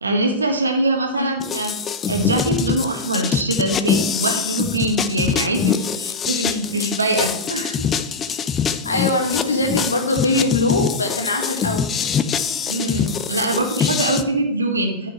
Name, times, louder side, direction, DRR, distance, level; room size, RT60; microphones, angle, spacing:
voice 1, 0.0-1.7 2.1-7.8 12.7-15.1, right 1 dB, 75° right, 3 dB, 1.5 m, -23 dB
sound 1, 1.4-14.2, left 6 dB, 25° left, 0.5 m, -24 dB
voice 2, 8.8-11.9, left 2 dB, 75° left, 3 dB, 1.6 m, -22 dB
13.0 x 5.6 x 3.2 m, 0.85 s
figure-of-eight pair, 90°, 0 cm